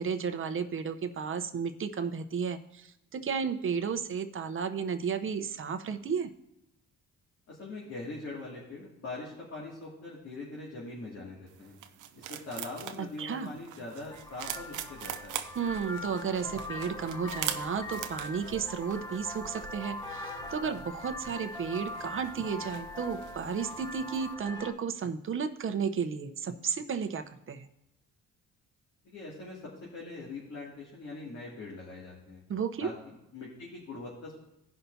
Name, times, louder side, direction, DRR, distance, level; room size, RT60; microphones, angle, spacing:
voice 1, 0.0-6.3 13.0-13.5 15.5-27.7 32.5-32.9, right 6 dB, 45° right, 8 dB, 0.8 m, -33 dB
voice 2, 7.5-11.7 12.1-15.4 29.0-32.4 32.8-34.4, left 2 dB, 55° left, -5 dB, 2.5 m, -42 dB
sound 1, 11.5-24.3, right 11 dB, 85° right, 0.7 m, -43 dB
Vehicle horn car horn honking, 14.0-24.7, left 1 dB, 15° left, 0.9 m, -41 dB
16.5 x 5.7 x 2.7 m, 0.89 s
cardioid pair, 90°, 30 cm